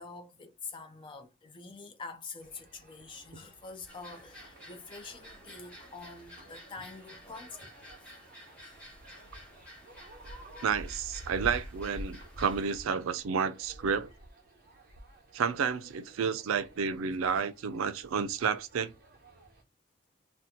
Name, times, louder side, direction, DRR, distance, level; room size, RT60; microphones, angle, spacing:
voice 1, 0.0-7.7 8.6-9.2, left 4 dB, 25° left, 0.4 m, -46 dB
sound 1, 2.4-19.6, equal, 45° right, 1.0 m, -50 dB
sound 2, 3.9-12.8, equal, 5° left, 1.0 m, -52 dB
voice 2, 10.6-14.1 15.3-18.9, right 6 dB, 90° right, 0.4 m, -31 dB
2.8 x 2.1 x 3.6 m
head